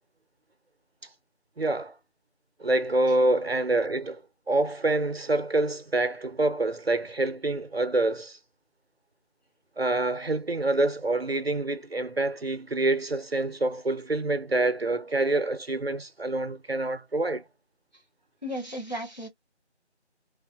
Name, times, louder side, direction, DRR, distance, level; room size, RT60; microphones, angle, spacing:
voice 1, 1.6-2.0 2.6-4.2 4.5-8.4 9.8-17.4, right 2 dB, 60° right, 0.5 m, -26 dB
voice 2, 18.4-19.3, equal, 40° left, 0.8 m, -34 dB
3.2 x 2.1 x 2.4 m
figure-of-eight pair, 180°, 34 cm